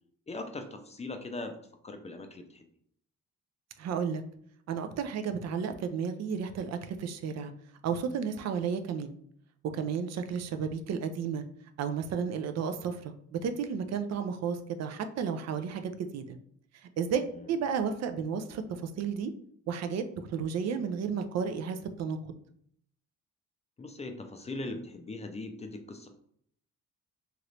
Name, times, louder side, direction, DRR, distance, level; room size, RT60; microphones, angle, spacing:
voice 1, 0.3-1.6 1.8-2.7 17.3-17.5 23.8-26.1, left 2 dB, 20° left, 6 dB, 0.4 m, -40 dB
voice 2, 3.8-4.2 4.7-7.5 7.8-9.1 9.7-11.4 11.8-16.4 17.0-19.3 19.7-20.0 20.3-22.3, right 6 dB, 60° right, 8 dB, 0.4 m, -32 dB
2.9 x 2.5 x 3.2 m, 0.67 s
cardioid pair, 90°, 30 cm